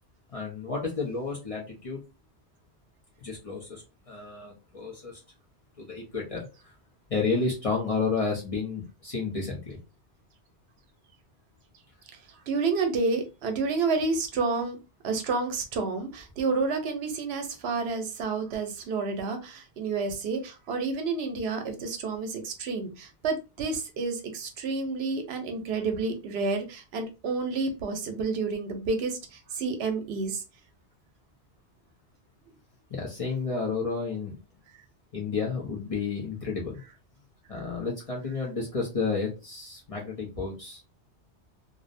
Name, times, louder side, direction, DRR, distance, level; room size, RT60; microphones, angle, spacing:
voice 1, 0.3-2.0 3.2-5.2 5.8-6.7 7.1-9.8 32.9-34.4 35.1-36.8 37.5-40.8, left 4 dB, 40° left, 0.6 m, -31 dB
voice 2, 12.5-14.8 15.0-30.4, right 4 dB, 70° right, 0.8 m, -30 dB
2.5 x 2.0 x 2.5 m
omnidirectional pair, 1.1 m